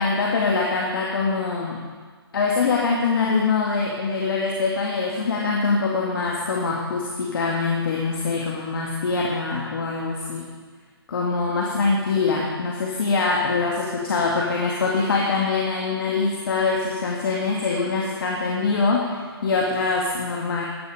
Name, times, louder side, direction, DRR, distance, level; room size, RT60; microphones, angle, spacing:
voice 1, 0.0-1.8 2.3-10.5 11.1-20.6, left 4 dB, 60° left, -2 dB, 2.3 m, -23 dB
14.0 x 12.0 x 5.1 m, 1.5 s
figure-of-eight pair, 140°, 13 cm